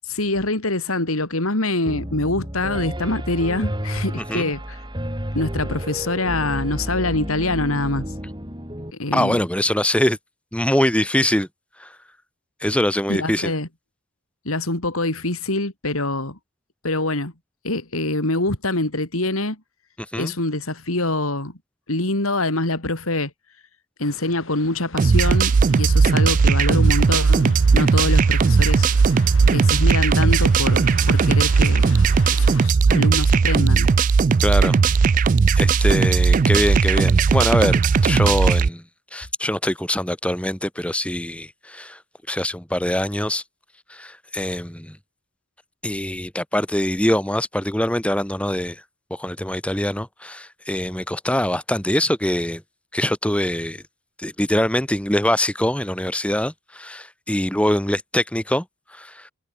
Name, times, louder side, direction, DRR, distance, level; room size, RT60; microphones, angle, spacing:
voice 1, 0.1-4.8 5.3-8.0 9.0-9.4 13.1-13.7 14.4-16.4 16.8-17.3 17.6-19.6 20.2-21.5 21.9-23.3 24.0-28.9 29.5-31.9 32.3-33.9, left 2 dB, 85° left, 4.1 m, -24 dB
Piano, 1.9-8.9, equal, 20° right, 6.1 m, -31 dB
voice 2, 9.1-10.2 10.5-11.5 11.8-12.0 12.6-13.5 20.1-20.3 34.4-34.7 35.6-38.8 39.1-42.0 42.3-43.4 43.9-45.0 45.8-48.8 49.1-52.6 52.9-53.8 54.2-59.3, left 1 dB, 5° left, 1.8 m, -23 dB
sound 1, 24.0-32.7, left 3 dB, 70° left, 4.1 m, -41 dB
sound 2, 25.0-38.7, right 5 dB, 40° right, 0.3 m, -17 dB
head